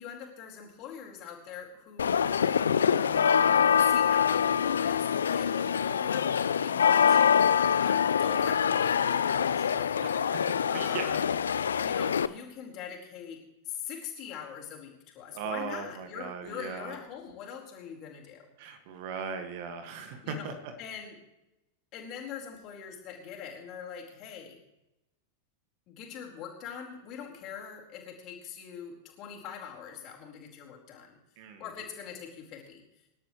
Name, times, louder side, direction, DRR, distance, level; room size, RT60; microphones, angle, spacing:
voice 1, 0.0-2.3 3.0-7.2 7.8-10.1 10.7-11.4 11.8-18.5 20.2-21.2 21.9-24.6 25.9-31.2 31.6-32.8, left 8 dB, 40° left, -1 dB, 4.5 m, -43 dB
sound 1, 2.0-12.3, left 7 dB, 70° left, 0.5 m, -25 dB
voice 2, 10.0-10.4 10.7-11.0 15.3-16.9 18.6-20.5 31.4-31.6, right 6 dB, 50° right, 7 dB, 1.9 m, -38 dB
26.5 x 12.0 x 3.2 m, 0.93 s
figure-of-eight pair, 90°, 0 cm